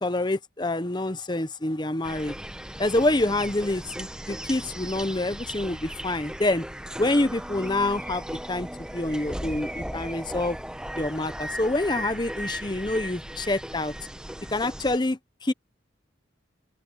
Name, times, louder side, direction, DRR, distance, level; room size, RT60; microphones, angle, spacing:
voice 1, 0.0-2.3 2.8-6.7 7.0-10.6 10.9-13.9 14.5-15.5, left 2 dB, 25° left, 0.9 m, -27 dB
sound 1, 2.0-15.0, equal, 5° right, 1.0 m, -37 dB
head